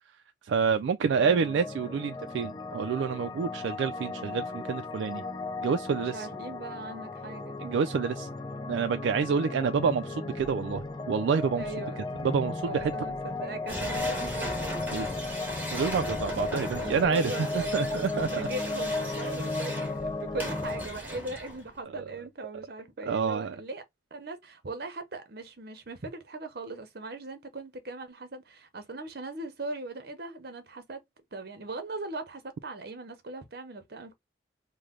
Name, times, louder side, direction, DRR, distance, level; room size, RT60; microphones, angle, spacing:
voice 1, 0.4-5.2 5.6-6.3 7.6-8.3 8.7-11.6 12.2-12.9 14.9-15.1 15.7-18.5 23.1-23.6, right 6 dB, 75° right, 0.3 m, -28 dB
voice 2, 1.0-1.5 6.0-7.6 11.6-12.0 12.6-14.6 16.5-17.7 18.1-23.8 24.1-31.0 31.3-34.1, right 2 dB, 55° right, 0.8 m, -39 dB
sound 1, 1.2-20.8, left 3 dB, 20° left, 0.4 m, -35 dB
sound 2, 13.7-21.8, equal, 10° right, 1.1 m, -38 dB
3.2 x 2.2 x 3.6 m
head